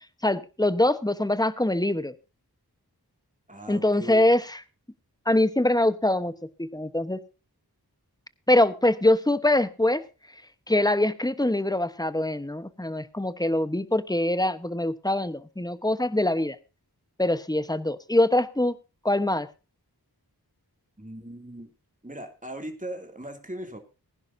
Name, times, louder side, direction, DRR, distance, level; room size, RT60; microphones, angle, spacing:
voice 1, 0.2-2.1 3.7-4.6 5.3-6.3 6.6-7.2 8.5-10.0 10.7-16.6 17.2-18.8 19.0-19.5, left 1 dB, 10° left, 13 dB, 1.0 m, -23 dB
voice 2, 3.5-4.3 21.0-21.7 22.0-23.8, right 1 dB, 20° right, 4 dB, 2.8 m, -39 dB
20.5 x 10.5 x 2.7 m, 0.31 s
wide cardioid pair, 40°, 39 cm